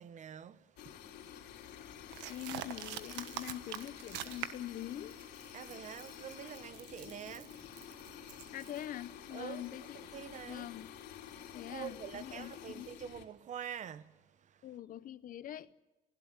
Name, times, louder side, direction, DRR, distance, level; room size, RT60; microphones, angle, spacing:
voice 1, 0.0-2.3 5.5-8.5 9.3-9.6 9.9-10.7 11.4-14.7, right 8 dB, 45° right, 1.0 m, -47 dB
sound 1, 0.8-13.2, left 10 dB, 70° left, 3.2 m, -50 dB
sound 2, 2.1-4.7 5.1-8.9, right 12 dB, 85° right, 1.3 m, -45 dB
voice 2, 2.3-5.2 8.5-10.0 10.5-10.9 11.5-12.9 14.6-15.7, left 12 dB, 50° left, 0.8 m, -44 dB
29.5 x 16.5 x 7.4 m
cardioid pair, 120°, 18 cm